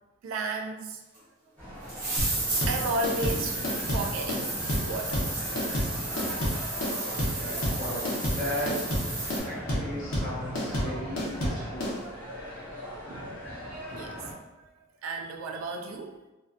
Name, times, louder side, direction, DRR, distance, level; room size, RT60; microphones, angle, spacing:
voice 1, 0.2-1.0 1.6-2.2 2.5-5.3 11.8-11.9 12.6-13.4 13.9-14.3 14.6-14.7 15.0-16.2, right 2 dB, 85° right, 3 dB, 0.3 m, -35 dB
sound 1, 1.1-1.2 1.9-9.4, right 2 dB, 45° right, 0.9 m, -33 dB
sound 2, 1.6-14.3, equal, 10° left, 0.9 m, -40 dB
sound 3, 2.2-11.9, equal, 85° left, 0.8 m, -29 dB
voice 2, 7.0-8.9 9.4-12.2, equal, 40° left, -7 dB, 0.8 m, -37 dB
2.4 x 2.3 x 2.3 m, 1.1 s
head